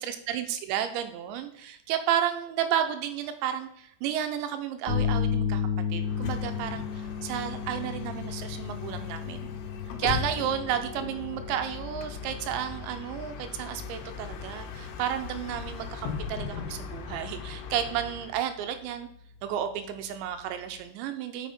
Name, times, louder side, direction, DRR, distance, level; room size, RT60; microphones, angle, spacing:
voice 1, 0.0-9.5 10.0-19.1 19.4-21.5, right 10 dB, 80° right, 8 dB, 2.9 m, -32 dB
sound 1, 4.9-20.8, left 7 dB, 50° left, 2.4 m, -36 dB
Bus, 6.0-18.4, left 6 dB, 80° left, 3.3 m, -39 dB
6.5 x 6.4 x 5.4 m, 0.71 s
omnidirectional pair, 5.5 m